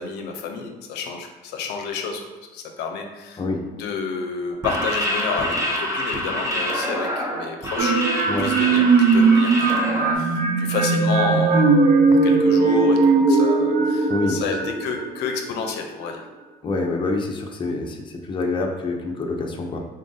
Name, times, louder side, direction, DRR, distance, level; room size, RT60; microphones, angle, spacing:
voice 1, 0.0-3.4 3.7-8.0 8.4-16.2, left 5 dB, 85° left, 3 dB, 0.5 m, -30 dB
sound 1, 4.5-10.1, equal, 20° right, 0.7 m, -26 dB
sound 2, 7.8-15.5, right 4 dB, 55° right, 0.5 m, -18 dB
voice 2, 14.1-14.4 16.6-19.8, left 3 dB, 30° left, 1 dB, 0.6 m, -26 dB
3.9 x 2.5 x 3.8 m, 1.2 s
cardioid pair, 110°, 17 cm